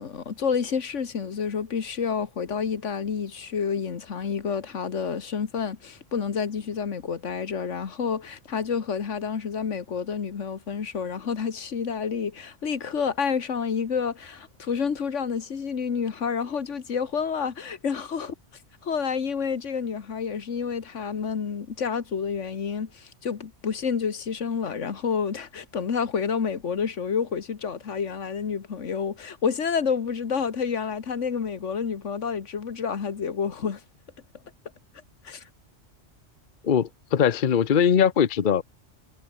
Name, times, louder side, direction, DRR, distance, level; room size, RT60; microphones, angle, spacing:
voice 1, 0.0-18.4 18.8-33.8 35.2-35.4, left 6 dB, 90° left, 1.8 m, -29 dB
voice 2, 36.6-38.6, left 8 dB, 50° left, 0.9 m, -21 dB
omnidirectional pair, 1.2 m